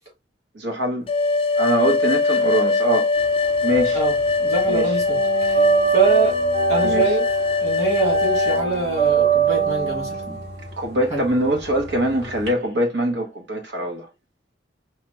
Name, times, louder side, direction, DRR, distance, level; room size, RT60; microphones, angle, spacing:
voice 1, 0.5-1.1 1.6-3.1 3.6-4.0 4.7-4.9 6.8-7.2 10.8-14.1, right 1 dB, 90° right, 1.0 m, -23 dB
sound 1, 1.1-8.7, left 3 dB, 30° left, 0.4 m, -21 dB
sound 2, 3.2-4.3 4.6-12.5, right 7 dB, 65° right, 2.2 m, -23 dB
voice 2, 3.9-5.6 5.9-6.4 6.7-7.3 7.6-10.4 11.1-11.2, right 3 dB, 40° right, 2.2 m, -25 dB
4.7 x 2.2 x 3.0 m
head